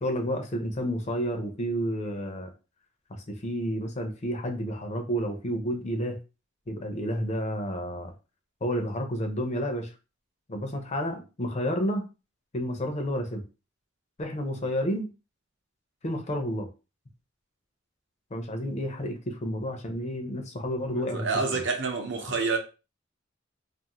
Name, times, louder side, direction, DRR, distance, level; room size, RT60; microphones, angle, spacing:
voice 1, 0.0-2.5 3.1-6.2 6.7-8.1 8.6-9.9 10.5-12.1 12.5-13.4 14.2-15.1 16.0-16.7 18.3-21.3 21.5-21.6, equal, 35° left, 0.5 m, -30 dB
voice 2, 20.9-22.6, right 4 dB, 65° right, 0.7 m, -28 dB
2.5 x 2.5 x 2.9 m
head